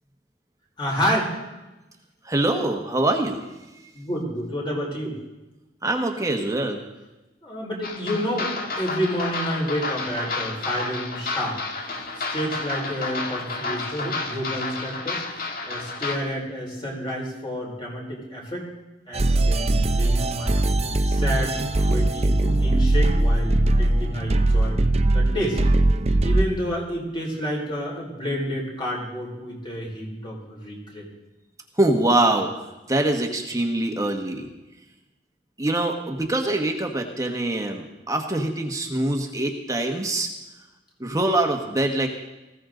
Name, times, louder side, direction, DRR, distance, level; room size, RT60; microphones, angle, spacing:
voice 1, 0.8-1.4 3.9-5.2 7.4-11.6 12.1-15.2 15.7-18.7 19.0-20.6 21.0-24.8 25.1-25.6 26.2-31.0, equal, 30° left, -2 dB, 4.9 m, -29 dB
voice 2, 2.2-3.4 5.8-6.9 11.9-12.2 31.8-32.5 32.9-34.5 35.6-40.3 41.0-42.1, right 2 dB, 20° right, 3 dB, 1.4 m, -24 dB
sound 1, 7.8-16.2, left 3 dB, 55° left, 1.7 m, -31 dB
sound 2, 19.1-26.4, right 2 dB, 35° right, 0.7 m, -20 dB
19.5 x 15.5 x 3.9 m, 1.0 s
head